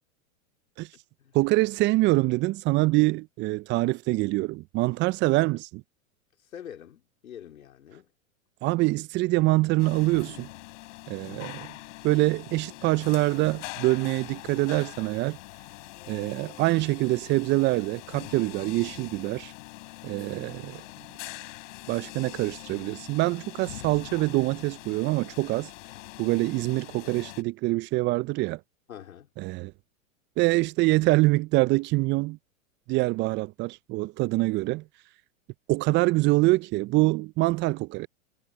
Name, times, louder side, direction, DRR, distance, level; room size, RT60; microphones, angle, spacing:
voice 1, 1.3-5.8 8.6-10.5 11.1-11.7 12.0-15.4 16.1-19.5 20.0-20.8 21.9-25.7 26.2-28.6 29.4-29.7 30.4-32.4 32.9-34.8 35.7-38.1, right 21 dB, 30° right, 0.5 m, -25 dB
voice 2, 6.4-8.1 28.9-29.3, left 9 dB, 80° left, 3.0 m, -45 dB
sound 1, 9.8-27.4, left 20 dB, 60° left, 6.3 m, -43 dB
hypercardioid pair, 105°, 41 cm